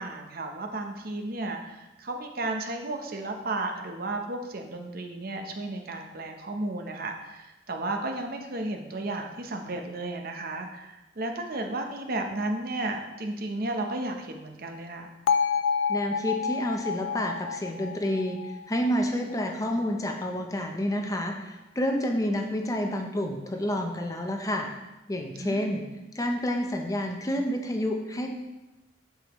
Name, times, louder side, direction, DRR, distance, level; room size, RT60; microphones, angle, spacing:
voice 1, 0.0-15.1 25.4-25.8, right 2 dB, 50° right, 4 dB, 0.8 m, -33 dB
Bell, 15.3-19.3, left 6 dB, 80° left, 0.3 m, -29 dB
voice 2, 15.9-24.7 25.1-25.8 26.1-28.3, equal, 20° left, 3 dB, 0.6 m, -29 dB
7.7 x 6.9 x 3.1 m, 1.0 s
head